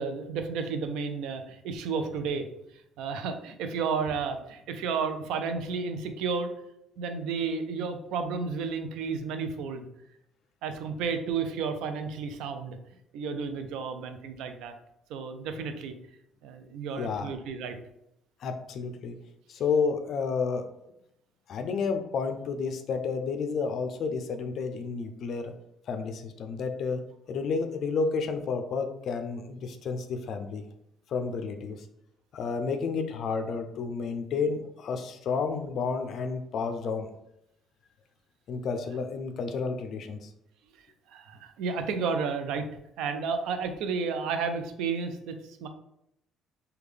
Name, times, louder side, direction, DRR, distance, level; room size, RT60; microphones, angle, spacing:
voice 1, 0.0-2.5 3.0-6.5 7.0-9.9 10.6-12.8 13.1-14.7 15.1-15.9 16.4-17.8 41.1-42.7 43.0-45.7, right 5 dB, 80° right, 8 dB, 0.4 m, -32 dB
voice 2, 17.0-17.3 18.4-19.2 19.5-20.7 21.5-25.5 25.9-27.0 27.3-30.6 31.1-31.8 32.3-37.1 38.5-40.3, left 5 dB, 55° left, 7 dB, 0.3 m, -31 dB
3.5 x 2.2 x 3.2 m, 0.79 s
cardioid pair, 125°, 0 cm